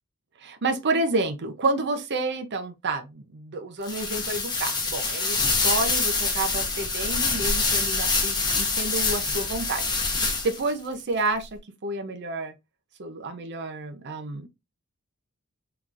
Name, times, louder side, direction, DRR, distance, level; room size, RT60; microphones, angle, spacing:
voice 1, 0.4-12.5 13.0-14.5, right 2 dB, 50° right, 0.6 m, -30 dB
sound 1, 3.8-10.7, left 3 dB, 20° left, 0.9 m, -25 dB
3.8 x 3.0 x 2.4 m
head